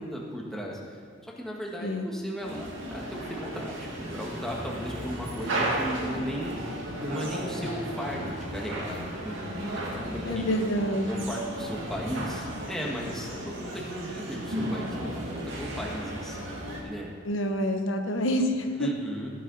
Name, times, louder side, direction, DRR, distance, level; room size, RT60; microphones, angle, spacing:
voice 1, 0.0-6.7 7.1-10.6 11.1-16.5 16.8-17.1 18.7-19.3, equal, ahead, -3 dB, 1.8 m, -36 dB
sound 1, 2.4-16.8, right 1 dB, 75° right, 2.5 m, -34 dB
voice 2, 10.3-11.3 17.2-18.9, equal, 75° left, 5 dB, 1.2 m, -27 dB
15.5 x 10.0 x 4.2 m, 2.3 s
head